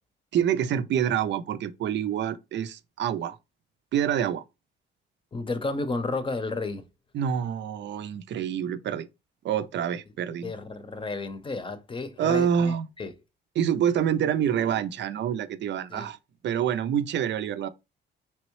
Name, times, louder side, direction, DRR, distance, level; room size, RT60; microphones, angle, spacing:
voice 1, 0.3-3.4 3.9-4.4 7.1-9.1 9.4-10.5 12.2-12.9 13.6-16.2 16.4-17.7, right 9 dB, 65° right, 0.5 m, -27 dB
voice 2, 5.3-6.9 10.4-13.1 15.9-16.1, left 3 dB, 25° left, 0.7 m, -32 dB
3.5 x 2.9 x 3.1 m
cardioid pair, 90°, 20 cm